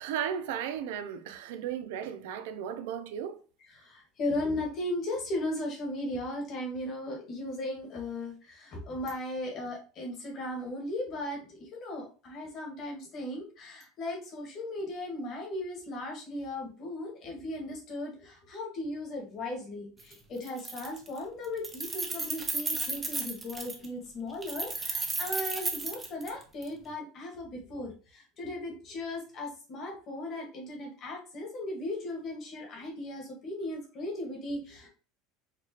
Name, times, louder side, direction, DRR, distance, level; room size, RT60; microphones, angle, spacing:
voice 1, 0.0-3.4, right 9 dB, 85° right, 0.5 m, -35 dB
voice 2, 3.7-11.4 11.7-34.9, left 1 dB, 40° left, 1.5 m, -37 dB
Keys jangling, 20.0-20.1 20.4-21.2 21.4-23.9 24.4-26.7, right 3 dB, 15° right, 0.6 m, -34 dB
4.5 x 2.4 x 2.9 m
cardioid pair, 150°, 0 cm